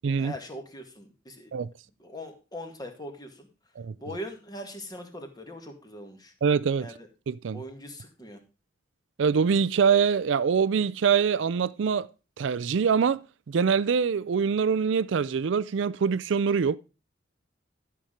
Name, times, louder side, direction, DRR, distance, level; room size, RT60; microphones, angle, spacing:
voice 1, 0.2-1.5 2.0-3.5 4.0-6.3 6.8-7.1 7.5-8.4, equal, 20° left, 1.7 m, -41 dB
voice 2, 6.4-6.9 7.3-7.6 9.2-12.1 12.4-16.8, right 6 dB, 70° right, 0.4 m, -24 dB
12.0 x 5.8 x 5.0 m
head